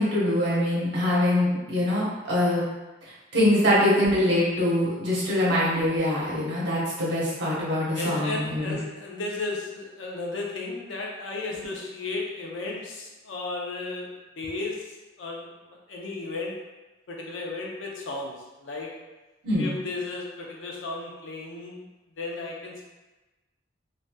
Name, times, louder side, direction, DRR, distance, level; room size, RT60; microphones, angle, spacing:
voice 1, 0.0-2.6 3.3-8.7 19.4-19.7, left 1 dB, 65° right, -7 dB, 1.0 m, -23 dB
voice 2, 8.0-14.1 14.4-14.9 15.2-15.4 15.9-16.6 17.1-18.9 19.6-21.8 22.2-22.8, left 3 dB, 75° left, -1 dB, 0.6 m, -34 dB
3.1 x 2.6 x 2.2 m, 1.1 s
head